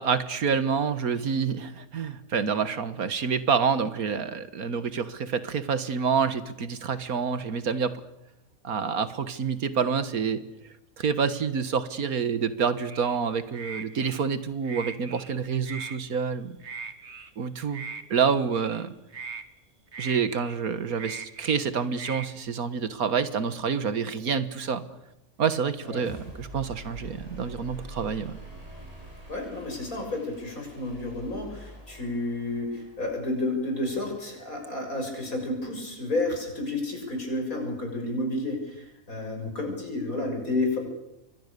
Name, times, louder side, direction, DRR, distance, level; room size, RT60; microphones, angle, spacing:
voice 1, 0.0-7.9 8.6-10.4 11.0-16.6 17.4-17.9 18.1-18.9 20.0-24.8 25.4-28.4, right 6 dB, 85° right, 12 dB, 1.9 m, -27 dB
sound 1, 12.9-13.2 13.5-14.2 14.6-15.3 15.6-16.0 16.6-17.3 17.7-18.0 18.5-18.8 19.1-19.4 19.9-20.5 20.9-21.6 21.9-22.3, right 5 dB, 50° right, 1.8 m, -40 dB
sound 2, 25.8-35.5, equal, 25° right, 7.2 m, -46 dB
voice 2, 29.3-40.8, left 2 dB, 75° left, 2 dB, 7.4 m, -31 dB
28.5 x 23.5 x 6.8 m, 0.91 s
omnidirectional pair, 1.5 m